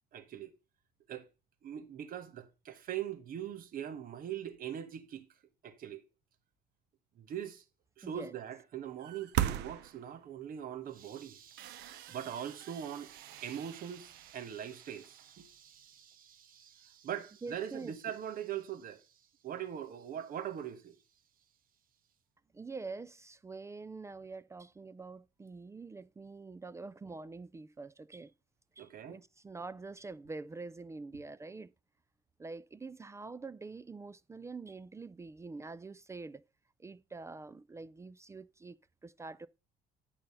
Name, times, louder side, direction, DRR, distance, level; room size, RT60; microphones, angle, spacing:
voice 1, 0.1-0.5 1.1-1.3 1.6-5.2 5.6-6.0 7.2-7.6 8.0-21.0 28.8-29.2, right 9 dB, 55° right, 1.3 m, -42 dB
voice 2, 8.0-8.3 17.4-17.9 22.5-28.3 28.8-31.7 32.4-36.4 36.8-39.5, right 3 dB, 15° right, 0.3 m, -45 dB
sound 1, 9.0-10.4 11.0-11.1 11.5-15.4, right 12 dB, 80° right, 0.7 m, -40 dB
8.9 x 5.6 x 5.5 m
cardioid pair, 110°, 17 cm